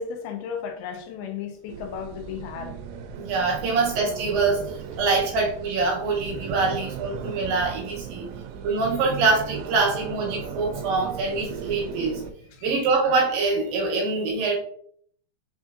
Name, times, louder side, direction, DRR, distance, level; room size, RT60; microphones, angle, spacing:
voice 1, 0.0-2.8 10.9-11.0 12.5-12.6, left 6 dB, 80° left, 4 dB, 2.3 m, -34 dB
sound 1, 1.7-12.3, right 8 dB, 90° right, 2.7 m, -37 dB
voice 2, 3.1-8.3 8.6-12.2 12.6-14.6, right 3 dB, 75° right, -1 dB, 2.4 m, -24 dB
6.0 x 3.6 x 2.4 m, 0.62 s
omnidirectional pair, 4.7 m